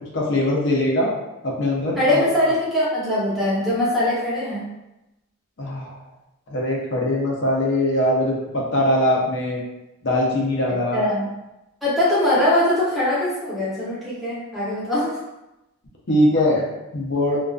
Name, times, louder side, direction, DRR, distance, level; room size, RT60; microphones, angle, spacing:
voice 1, 0.1-1.1 1.4-2.2 5.6-6.0 6.5-9.6 10.0-11.1 16.1-16.6 16.9-17.4, left 1 dB, 55° left, -3 dB, 0.5 m, -21 dB
voice 2, 1.9-4.7 10.9-11.3 11.8-15.2, left 1 dB, ahead, -10 dB, 0.7 m, -22 dB
2.4 x 2.3 x 2.3 m, 0.95 s
head